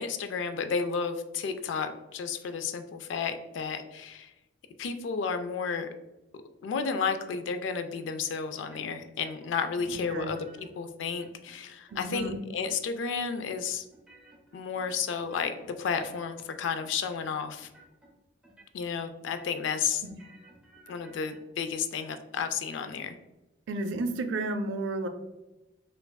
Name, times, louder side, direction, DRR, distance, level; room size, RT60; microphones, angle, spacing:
voice 1, 0.0-4.3 4.8-5.9 6.6-13.8 14.5-17.7 18.7-20.0 20.9-23.2, left 6 dB, 80° left, 8 dB, 0.3 m, -32 dB
sound 1, 8.6-9.1 9.4-10.7 11.1-11.6 11.9-12.4 12.7-13.3 13.5-15.7 16.0-16.5 16.8-17.3 17.6-18.1 18.4-19.0 19.2-21.4, right 1 dB, 5° right, 0.6 m, -57 dB
voice 2, 9.9-10.3 11.9-12.4 20.0-20.2 23.7-25.1, right 2 dB, 90° right, 8 dB, 0.4 m, -32 dB
4.5 x 2.5 x 2.2 m, 1.0 s
head